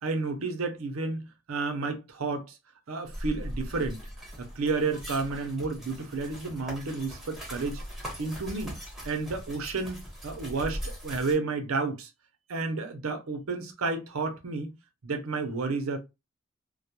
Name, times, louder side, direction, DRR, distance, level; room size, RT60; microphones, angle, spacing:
voice 1, 0.0-2.6 2.9-4.0 4.4-7.8 8.2-8.7 9.0-12.1 12.5-14.7 15.0-16.0, right 3 dB, 75° right, 0.6 m, -31 dB
sound 1, 3.0-11.4, equal, ahead, 1.1 m, -40 dB
2.2 x 2.1 x 2.8 m
head